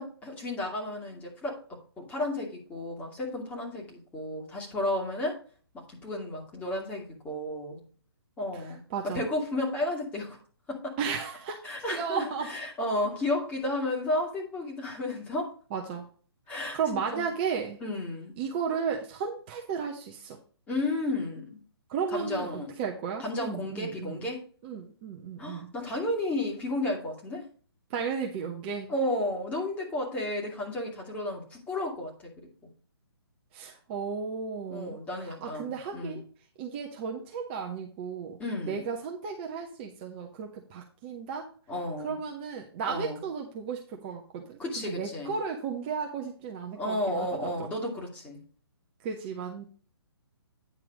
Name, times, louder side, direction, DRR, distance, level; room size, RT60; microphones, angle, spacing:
voice 1, 0.0-1.6 2.0-5.4 5.7-7.8 8.4-10.4 10.7-11.0 11.6-15.5 16.5-17.3 17.8-18.3 20.7-21.6 22.1-22.8 23.2-24.4 25.4-27.5 28.9-32.7 34.7-36.2 38.4-38.8 41.7-42.2 42.9-43.2 44.6-45.3 46.8-48.4, left 1 dB, 10° left, -1 dB, 2.2 m, -33 dB
voice 2, 8.5-9.2 11.0-11.6 11.9-12.5 15.7-16.1 16.7-17.8 18.4-20.4 21.9-22.5 22.8-24.2 24.6-25.7 27.9-28.9 33.5-36.2 36.6-38.4 38.7-41.5 42.0-47.7 49.0-49.6, right 6 dB, 25° right, 1 dB, 0.9 m, -34 dB
9.6 x 4.6 x 5.0 m, 0.41 s
figure-of-eight pair, 130°, 13 cm